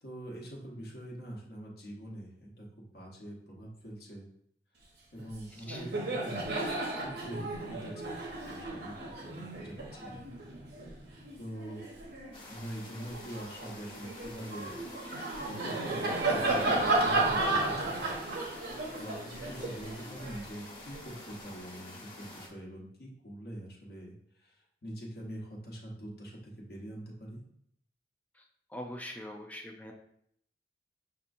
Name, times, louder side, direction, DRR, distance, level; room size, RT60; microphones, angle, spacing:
voice 1, 0.0-2.7 2.9-4.3 5.1-6.5 7.0-10.2 11.4-11.8 12.5-14.8 15.1-18.1 18.6-24.1 24.4-24.5 24.8-27.4, right 1 dB, 55° left, -3 dB, 1.0 m, -44 dB
Laughter, 5.2-5.4 5.6-12.3 12.9-21.0, right 2 dB, 65° right, 1.0 m, -33 dB
sound 1, 12.3-22.5, left 2 dB, 30° left, 1.2 m, -48 dB
voice 2, 28.7-29.9, left 1 dB, 10° left, 2 dB, 0.5 m, -42 dB
5.8 x 2.9 x 2.6 m, 0.70 s
head